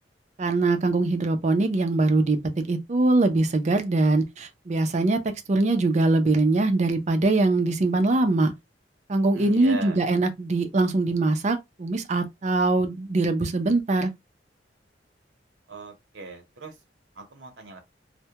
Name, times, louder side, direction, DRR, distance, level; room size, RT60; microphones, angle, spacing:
voice 1, 0.4-8.5 9.1-14.1, right 2 dB, 40° right, 0.5 m, -22 dB
voice 2, 9.3-10.0 15.7-16.8 17.1-17.8, right 3 dB, 85° right, 0.8 m, -38 dB
2.2 x 2.1 x 2.7 m
head